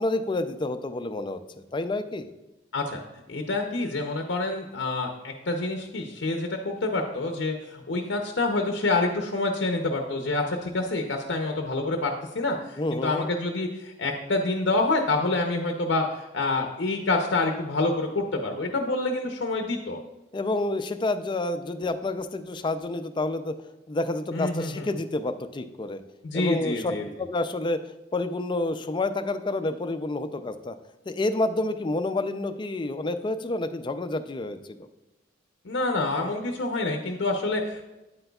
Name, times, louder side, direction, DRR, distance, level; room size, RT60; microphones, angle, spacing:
voice 1, 0.0-2.3 12.8-13.3 20.3-23.5 23.9-26.0 26.3-27.8 28.1-30.8 31.1-34.8, left 2 dB, 25° left, 10 dB, 0.4 m, -29 dB
voice 2, 3.3-20.0 24.3-24.9 26.2-27.0 35.6-37.9, left 2 dB, 90° left, 3 dB, 0.7 m, -27 dB
8.8 x 7.8 x 2.3 m, 1.0 s
head